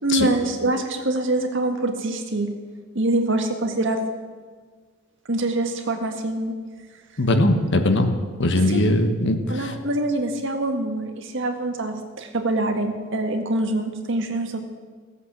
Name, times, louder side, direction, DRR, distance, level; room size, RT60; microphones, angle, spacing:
voice 1, 0.0-2.5 2.9-4.0 5.3-6.5 8.7-8.8 9.5-14.6, right 2 dB, 65° right, 5 dB, 1.7 m, -24 dB
voice 2, 7.2-8.1 8.4-9.7, left 1 dB, 60° left, 7 dB, 1.3 m, -20 dB
16.0 x 8.3 x 7.5 m, 1.5 s
head